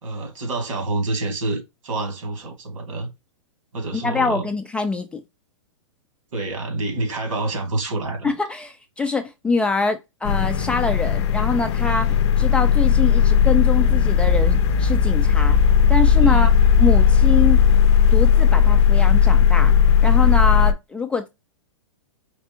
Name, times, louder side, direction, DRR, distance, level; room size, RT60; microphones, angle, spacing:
voice 1, 0.0-3.1 3.7-4.5 6.3-8.3 16.2-16.5, right 2 dB, 75° right, 2.0 m, -27 dB
voice 2, 3.9-5.2 8.2-15.6 15.9-16.5 16.8-17.6 18.1-19.7 20.0-21.3, left 4 dB, 5° left, 0.4 m, -24 dB
sound 1, 10.2-20.7, left 7 dB, 55° left, 0.6 m, -16 dB
4.5 x 3.2 x 2.7 m
hypercardioid pair, 140°, 17 cm